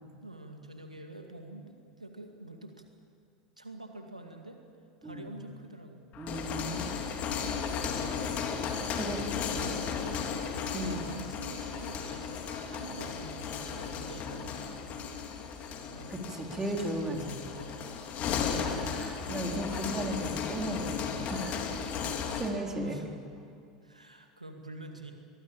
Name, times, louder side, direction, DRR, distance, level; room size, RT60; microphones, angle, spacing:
voice 1, 0.2-2.8 3.6-4.6 5.0-6.1 9.2-14.6 15.9-16.1 16.6-17.9 22.5-23.1 23.8-25.1, right 2 dB, 90° right, 4 dB, 2.1 m, -46 dB
voice 2, 5.0-5.4 6.2-6.9 8.9-9.2 10.7-11.1 14.6-14.7 16.1-17.2 18.2-22.0 22.4-23.0, right 1 dB, 15° right, 1 dB, 3.9 m, -36 dB
sound 1, 6.1-22.6, left 6 dB, 40° left, 2.9 m, -35 dB
23.5 x 20.0 x 8.8 m, 2.3 s
figure-of-eight pair, 80°, 4 cm